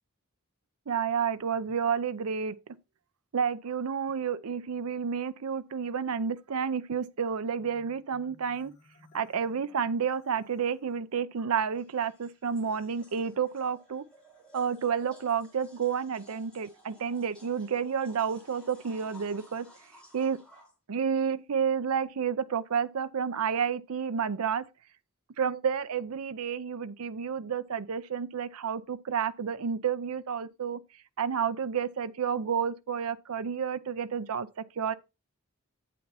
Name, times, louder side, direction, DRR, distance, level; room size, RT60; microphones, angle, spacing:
voice 1, 0.9-2.6 3.3-8.7 9.1-14.0 14.5-19.7 20.1-20.4 20.9-24.6 25.4-30.8 31.2-34.9, right 7 dB, 80° right, 0.5 m, -30 dB
Marimba xylophone, 7.5-10.9, left 2 dB, 50° left, 3.1 m, -60 dB
sound 1, 9.7-9.8 11.5-20.7, equal, 5° left, 5.3 m, -56 dB
8.4 x 7.8 x 2.8 m
head